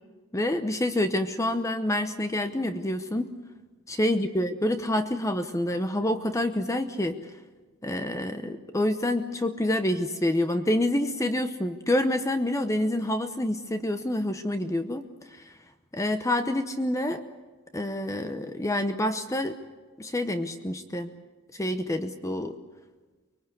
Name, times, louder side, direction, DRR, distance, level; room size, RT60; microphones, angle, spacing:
voice 1, 0.3-3.3 3.9-7.2 7.8-15.6 15.9-17.2 17.7-19.6 20.0-21.1 21.5-22.6, left 1 dB, 15° left, 8 dB, 0.9 m, -27 dB
24.5 x 22.5 x 8.1 m, 1.3 s
head